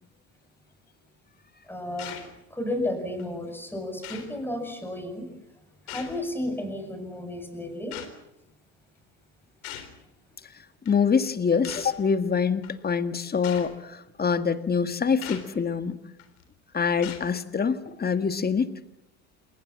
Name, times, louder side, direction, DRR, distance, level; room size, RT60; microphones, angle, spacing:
voice 1, 1.7-2.2 2.5-5.3 5.9-8.0, left 1 dB, 5° left, 5 dB, 7.4 m, -32 dB
sound 1, 2.0-2.3 3.2-3.3 4.0-4.4 5.9-6.3 7.9-8.1 9.6-10.0 10.9-11.0 11.6-12.0 12.6-12.7 13.4-13.7 15.2-15.5 16.2-16.4 17.0-17.3, left 10 dB, 90° left, 3.9 m, -40 dB
voice 2, 10.9-16.0 16.7-18.7, left 6 dB, 20° left, 10 dB, 1.7 m, -25 dB
29.0 x 21.0 x 7.4 m, 0.86 s
supercardioid pair, 100°, 42 cm